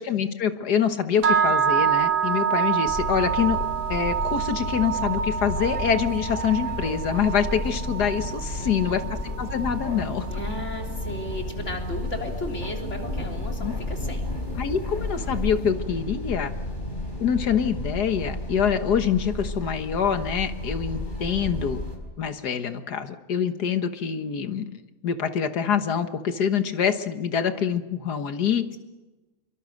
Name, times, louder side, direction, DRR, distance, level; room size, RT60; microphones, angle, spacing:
voice 1, 0.0-3.6 3.9-9.0 9.4-10.3 13.6-13.8 14.6-16.5 17.2-21.8 22.2-24.7 25.0-28.7, left 7 dB, 70° left, 9 dB, 1.8 m, -25 dB
sound 1, 1.2-11.3, right 7 dB, 75° right, 1.8 m, -27 dB
sound 2, 2.8-22.0, left 1 dB, 30° left, 4.7 m, -32 dB
voice 2, 8.6-9.1 10.3-14.3, left 2 dB, 45° left, 2 dB, 3.6 m, -35 dB
26.5 x 23.5 x 6.5 m, 1.1 s
omnidirectional pair, 1.8 m